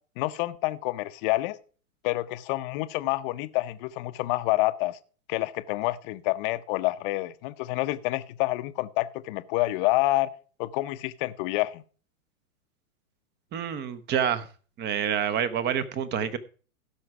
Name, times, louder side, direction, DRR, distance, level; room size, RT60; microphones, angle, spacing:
voice 1, 0.2-1.6 2.0-5.0 5.3-10.3 10.6-11.8, left 18 dB, 40° left, 11 dB, 0.8 m, -28 dB
voice 2, 13.5-14.5 14.8-16.4, right 8 dB, 25° right, 15 dB, 1.1 m, -27 dB
16.0 x 6.5 x 4.7 m, 0.39 s
hypercardioid pair, 130°, 44 cm